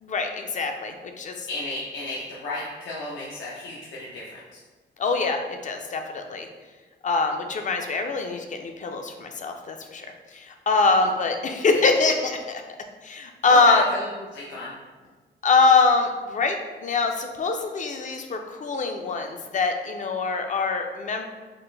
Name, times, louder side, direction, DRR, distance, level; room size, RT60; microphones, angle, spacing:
voice 1, 0.0-1.5 5.0-6.5 7.0-10.1 10.3-12.6 13.0-13.8 15.4-21.2, left 4 dB, 40° left, 5 dB, 0.4 m, -23 dB
voice 2, 1.5-4.6 13.5-14.7, left 2 dB, 85° left, -6 dB, 0.6 m, -34 dB
4.1 x 2.4 x 3.2 m, 1.3 s
wide cardioid pair, 130°, 19 cm